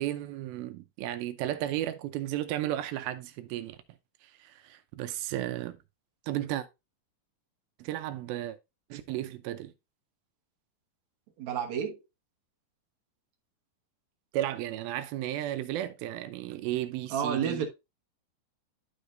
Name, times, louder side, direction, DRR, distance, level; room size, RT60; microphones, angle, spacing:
voice 1, 0.0-3.8 4.2-5.8 6.3-6.7 7.8-8.6 8.9-9.7 14.3-17.7, right 13 dB, 80° right, 2.5 m, -34 dB
voice 2, 11.4-12.0 17.1-17.7, right 8 dB, 60° right, 2.2 m, -30 dB
12.5 x 4.9 x 2.6 m
omnidirectional pair, 4.3 m